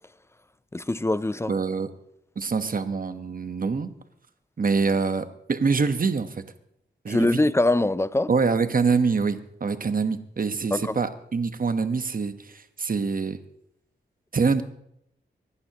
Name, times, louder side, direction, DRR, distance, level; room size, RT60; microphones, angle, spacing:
voice 1, 0.7-1.5 7.1-8.3 10.7-11.0, left 2 dB, 15° left, 0.4 m, -23 dB
voice 2, 1.5-1.9 2.3-3.9 4.6-6.4 7.0-7.4 8.3-13.4 14.3-14.6, right 4 dB, 50° right, 1.2 m, -25 dB
25.5 x 11.5 x 3.0 m
wide cardioid pair, 80°, 19 cm